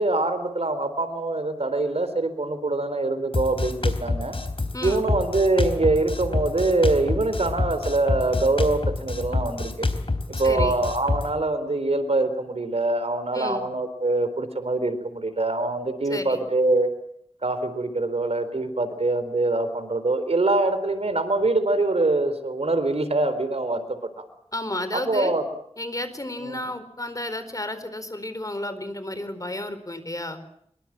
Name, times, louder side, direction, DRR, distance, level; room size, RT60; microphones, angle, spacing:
voice 1, 0.0-4.4 4.8-9.9 10.3-16.9 17.4-24.2 24.9-25.5 26.4-26.7, right 2 dB, 70° right, 10 dB, 4.0 m, -24 dB
Drum kit, 3.3-11.3, left 2 dB, 55° left, 3.7 m, -27 dB
voice 2, 4.7-5.1 10.4-10.7 13.3-13.6 16.1-16.4 24.5-25.3 25.8-30.4, left 1 dB, 30° left, 11 dB, 4.5 m, -32 dB
25.0 x 23.5 x 7.5 m, 0.71 s
wide cardioid pair, 70°, 11 cm